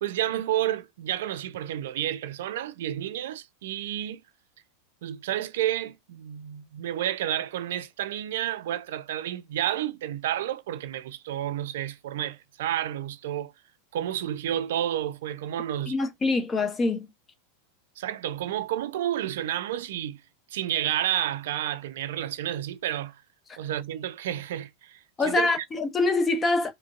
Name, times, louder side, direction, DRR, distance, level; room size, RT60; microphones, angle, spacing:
voice 1, 0.0-4.2 5.0-13.5 13.9-16.0 18.0-20.2 20.5-23.2 23.6-25.0 25.2-25.6, right 12 dB, 65° right, 0.4 m, -30 dB
voice 2, 15.9-17.1 25.2-26.7, left 3 dB, 20° left, 0.9 m, -25 dB
5.0 x 2.1 x 2.4 m
figure-of-eight pair, 90°, 0 cm